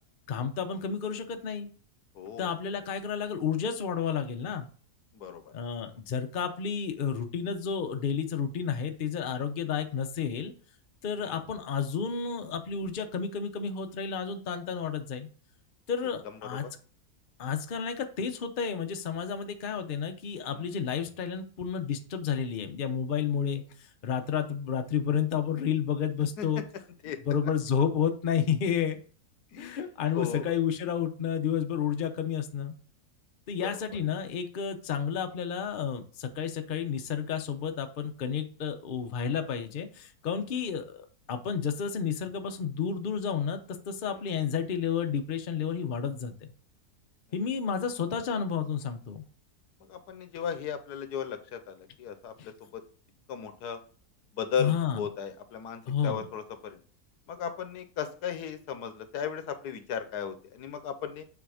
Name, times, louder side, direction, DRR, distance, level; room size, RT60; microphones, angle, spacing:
voice 1, 0.3-1.7 2.4-4.7 5.5-10.5 11.0-15.3 15.9-16.7 17.4-23.6 24.0-26.6 27.3-29.0 29.6-32.7 33.5-43.6 43.9-46.3 47.3-49.2 52.4-52.5 54.6-55.0 55.9-56.2, left 7 dB, 50° left, 6 dB, 0.6 m, -31 dB
voice 2, 2.1-2.5 5.1-5.5 9.6-9.7 11.2-11.4 16.2-16.7 20.5-20.7 26.4-26.5 27.0-27.2 29.5-29.8 30.1-30.5 33.6-34.0 40.2-40.4 44.1-44.3 49.8-52.8 53.3-53.8 54.3-56.8 57.3-61.2, left 7 dB, 80° left, 9 dB, 1.4 m, -36 dB
7.2 x 3.5 x 4.8 m, 0.42 s
omnidirectional pair, 1.7 m